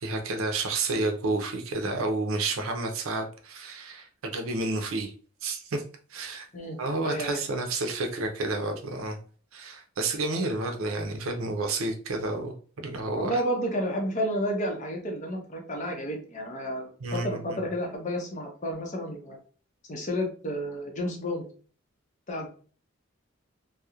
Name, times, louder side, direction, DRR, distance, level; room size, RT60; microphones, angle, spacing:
voice 1, 0.0-5.1 5.4-5.8 6.1-6.5 6.8-9.2 9.5-13.4 17.0-17.6, right 2 dB, 80° right, 5 dB, 0.5 m, -30 dB
voice 2, 7.0-7.4 13.2-19.4 19.9-21.4 22.3-22.5, equal, 35° left, 2 dB, 0.6 m, -31 dB
2.9 x 2.0 x 2.3 m, 0.41 s
head